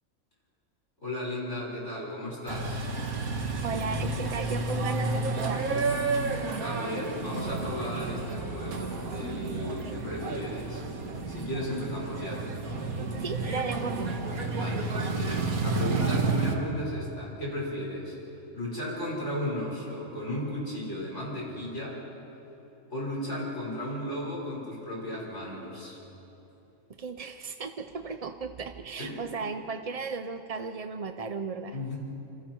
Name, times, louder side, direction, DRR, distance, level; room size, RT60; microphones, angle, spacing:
voice 1, 1.0-2.8 6.3-10.8 11.3-12.5 14.5-18.1 18.5-22.0 22.9-26.0 29.0-29.2 31.7-31.9, left 1 dB, 50° left, -5 dB, 5.9 m, -35 dB
sound 1, 2.5-16.6, right 3 dB, 75° right, 2.0 m, -31 dB
voice 2, 3.6-5.8 9.7-10.0 13.2-14.2 27.0-31.9, right 4 dB, 45° right, 7 dB, 0.5 m, -36 dB
27.5 x 27.0 x 4.6 m, 3.0 s
omnidirectional pair, 1.5 m